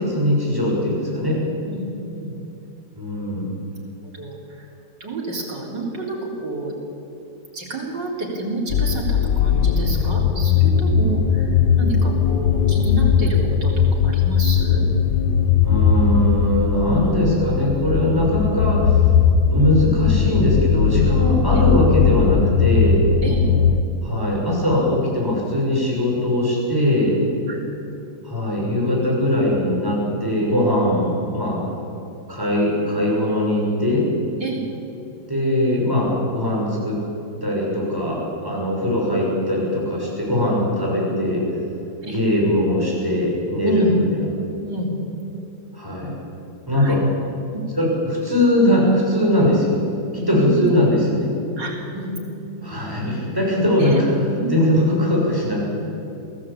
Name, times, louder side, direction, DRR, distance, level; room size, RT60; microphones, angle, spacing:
voice 1, 0.0-1.4 3.0-3.4 15.6-19.0 19.5-23.0 24.0-27.2 28.2-31.6 32.3-34.0 35.3-37.0 37.4-41.4 42.0-44.0 45.7-46.1 46.7-47.0 47.8-49.7 50.1-51.3 52.6-55.6, left 1 dB, 10° right, -4 dB, 6.3 m, -20 dB
voice 2, 1.7-2.4 4.1-4.7 5.0-6.7 7.5-14.9 18.1-18.3 21.5-21.6 23.2-23.5 27.5-27.6 34.4-34.6 37.8-38.2 42.0-42.2 43.6-44.0 44.6-44.9 46.7-47.0 47.5-47.6 50.4-50.7 51.6-52.2 53.8-54.0 54.4-54.5, right 2 dB, 85° right, -2 dB, 4.6 m, -29 dB
sound 1, 8.7-23.8, left 7 dB, 75° left, 1.6 m, -18 dB
23.0 x 16.0 x 8.7 m, 2.8 s
omnidirectional pair, 1.9 m